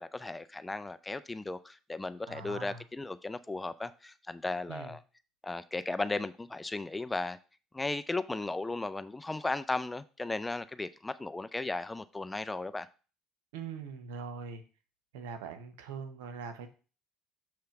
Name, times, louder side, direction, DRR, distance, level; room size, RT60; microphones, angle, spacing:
voice 1, 0.0-5.0 5.4-7.4 7.7-12.9, left 2 dB, 15° left, 0.5 m, -36 dB
voice 2, 2.3-2.8 4.7-5.0 13.5-14.6 15.1-16.7, right 5 dB, 90° right, 1.0 m, -42 dB
6.9 x 3.2 x 5.8 m
supercardioid pair, 80°, 0 cm